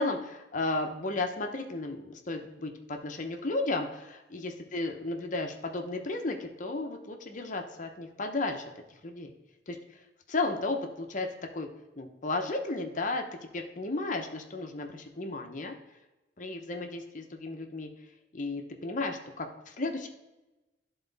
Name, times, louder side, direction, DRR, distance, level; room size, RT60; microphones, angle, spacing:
voice 1, 0.0-8.6 9.0-9.3 9.7-9.8 10.3-11.3 11.5-11.7 12.0-15.7 16.4-17.9 18.3-20.1, left 2 dB, 45° left, 4 dB, 0.8 m, -34 dB
11.5 x 3.9 x 4.0 m, 1.1 s
head